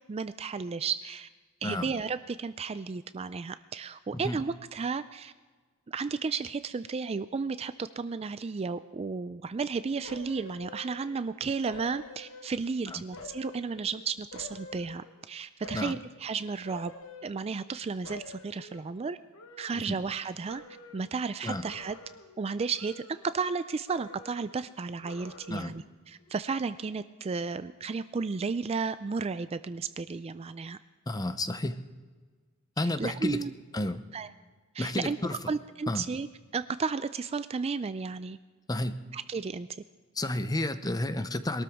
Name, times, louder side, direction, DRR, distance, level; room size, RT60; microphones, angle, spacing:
voice 1, 0.1-1.3 1.6-5.3 5.9-16.9 17.2-19.2 19.6-20.6 20.9-22.0 22.4-30.8 32.8-33.5 34.1-34.3 34.7-36.3 36.5-38.4 39.1-39.7, right 4 dB, 30° right, 13 dB, 0.3 m, -33 dB
sound 1, 10.0-11.3 11.7-12.8 13.1-15.2 15.6-16.2 16.6-17.8 18.0-20.2 20.5-21.2 21.6-22.4 22.7-23.6 23.9-24.6 25.0-25.8 26.2-26.3, left 3 dB, 65° left, 1.3 m, -48 dB
voice 2, 31.1-31.8 32.8-33.4 33.7-34.0 34.8-35.4 35.9-36.1 38.7-38.9 40.2-41.6, left 1 dB, 15° left, 11 dB, 0.7 m, -31 dB
22.0 x 13.0 x 3.6 m, 1.4 s
head